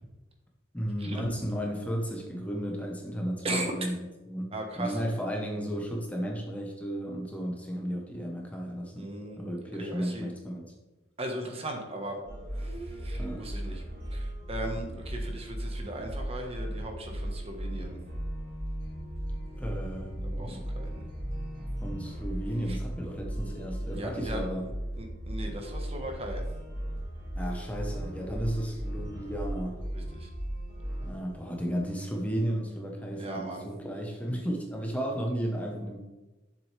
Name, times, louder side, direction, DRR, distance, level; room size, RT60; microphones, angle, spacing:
voice 1, 0.7-4.0 4.3-9.1 9.4-10.7 13.2-13.5 19.6-20.7 21.8-24.7 27.4-29.9 31.0-36.0, equal, 5° left, 0 dB, 1.0 m, -34 dB
voice 2, 4.5-5.0 9.0-10.3 11.2-12.2 12.6-13.8 14.1-18.0 20.2-21.0 22.7-22.8 23.9-24.4 25.0-26.4 29.9-30.3 33.2-33.7, right 1 dB, 30° right, 2 dB, 1.2 m, -38 dB
sound 1, 8.6-9.8 11.3-11.4 12.1-13.5, right 2 dB, 90° right, 1.9 m, -50 dB
sound 2, 12.3-31.1, right 1 dB, 65° right, 3.3 m, -36 dB
9.8 x 7.3 x 3.3 m, 1.1 s
head